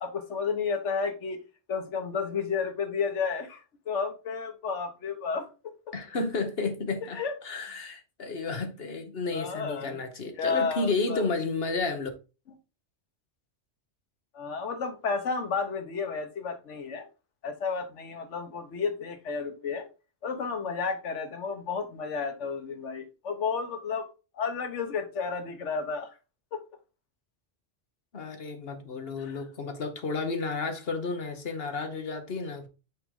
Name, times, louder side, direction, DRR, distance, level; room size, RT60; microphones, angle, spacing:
voice 1, 0.0-1.4 1.7-3.6 3.9-5.5 7.1-7.3 9.3-10.0 10.4-11.3 14.3-17.1 17.4-19.9 20.2-24.1 24.3-26.1 26.5-26.6 29.3-29.4, left 5 dB, 85° left, 1.4 m, -32 dB
voice 2, 5.9-12.1 28.1-32.7, left 3 dB, 60° left, 1.3 m, -32 dB
5.9 x 5.2 x 3.7 m
omnidirectional pair, 1.2 m